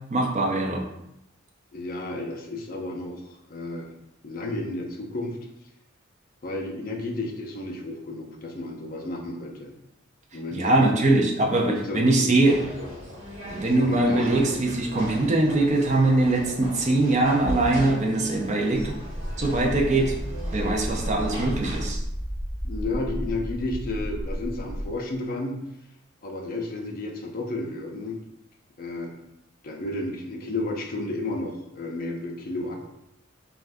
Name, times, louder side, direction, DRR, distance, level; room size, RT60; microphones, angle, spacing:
voice 1, 0.1-0.8 10.5-12.6 13.5-18.9 19.4-20.1 20.5-22.0, right 2 dB, 35° right, 1 dB, 0.4 m, -22 dB
voice 2, 1.7-3.9 4.2-5.4 6.4-9.7 10.3-10.9 11.7-12.3 13.7-14.5 22.6-25.6 26.2-28.2 28.8-29.1 29.6-32.9, left 2 dB, 45° left, 1 dB, 0.5 m, -32 dB
sound 1, 12.4-21.9, equal, 70° right, 1.0 m, -38 dB
sound 2, 19.0-24.9, equal, 15° right, 0.8 m, -32 dB
2.5 x 2.3 x 3.4 m, 0.82 s
head